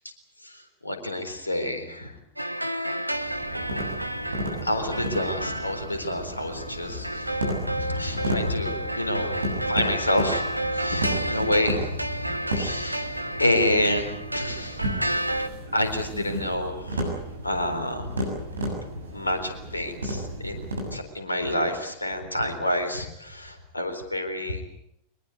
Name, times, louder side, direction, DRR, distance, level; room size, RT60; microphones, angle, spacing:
voice 1, 0.4-2.1 4.6-7.3 7.6-13.1 13.4-14.0 14.3-14.8 15.7-17.2 17.4-18.5 18.9-24.6, left 1 dB, 80° left, 7 dB, 4.0 m, -28 dB
sound 1, 2.4-15.5, right 1 dB, 90° right, 1.2 m, -31 dB
sound 2, 3.1-21.0, right 1 dB, 70° right, 7.0 m, -34 dB
23.5 x 21.0 x 8.3 m, 0.76 s
figure-of-eight pair, 90°, 0 cm